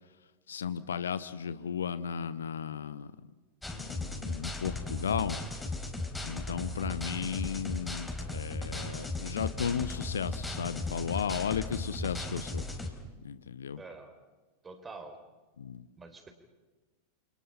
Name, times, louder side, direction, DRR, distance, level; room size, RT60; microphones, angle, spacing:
voice 1, 0.5-3.1 3.8-5.4 6.2-12.6 13.2-13.8 15.6-15.8, left 7 dB, 65° left, 15 dB, 1.0 m, -35 dB
sound 1, 3.6-12.9, left 2 dB, 5° left, 4.2 m, -37 dB
voice 2, 13.8-14.2 14.6-15.2 16.0-16.3, right 3 dB, 15° right, 7 dB, 4.4 m, -46 dB
29.0 x 28.0 x 5.7 m, 1.2 s
figure-of-eight pair, 90°, 0 cm